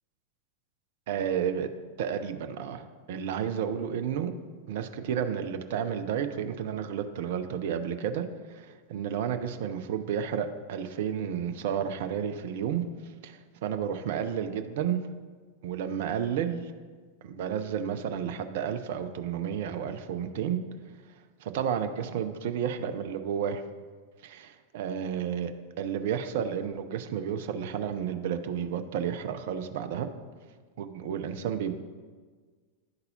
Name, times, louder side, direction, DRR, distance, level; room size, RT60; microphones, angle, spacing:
voice 1, 1.1-1.7 2.0-4.3 4.7-15.1 15.6-16.7 17.2-20.6 21.4-23.6 24.2-24.5 24.7-30.1 30.8-31.7, right 8 dB, 60° right, 8 dB, 0.5 m, -31 dB
11.5 x 4.0 x 2.7 m, 1.5 s
figure-of-eight pair, 90°, 0 cm